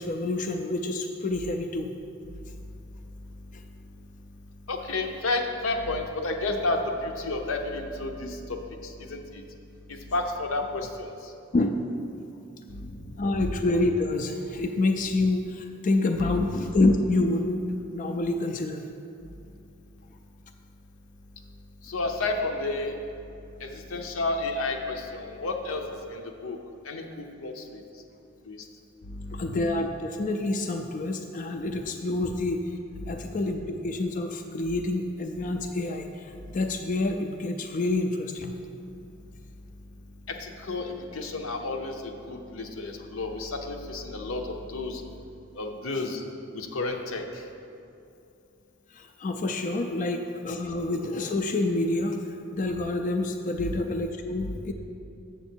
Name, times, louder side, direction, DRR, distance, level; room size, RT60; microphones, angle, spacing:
voice 1, 0.0-1.9 3.5-3.6 11.5-11.9 13.2-18.9 29.3-32.7 33.1-38.6 48.9-54.7, left 2 dB, 40° left, 4 dB, 0.4 m, -27 dB
voice 2, 4.7-9.4 9.9-11.1 12.7-13.5 16.2-16.5 21.8-23.0 23.6-26.6 26.8-27.8 28.5-28.6 29.0-29.5 33.0-33.1 40.3-45.0 45.6-46.2 46.5-47.4 53.6-53.7 54.4-54.7, left 2 dB, 85° left, 4 dB, 0.7 m, -31 dB
7.3 x 6.9 x 4.5 m, 2.6 s
head